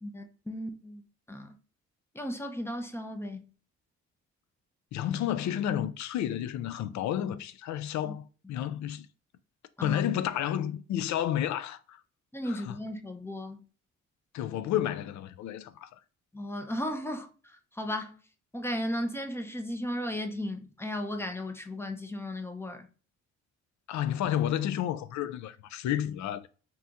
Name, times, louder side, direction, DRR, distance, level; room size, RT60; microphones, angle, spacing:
voice 1, 0.0-1.0 1.3-1.6 2.1-3.4 8.0-8.1 9.8-10.0 12.3-13.6 16.3-18.2 18.5-22.9, left 1 dB, 10° left, 0.5 m, -35 dB
voice 2, 4.9-8.2 8.5-9.1 9.8-12.0 12.5-12.8 14.3-16.0 23.9-26.4, left 11 dB, 70° left, 0.4 m, -31 dB
2.9 x 2.5 x 3.4 m
cardioid pair, 90°, 30 cm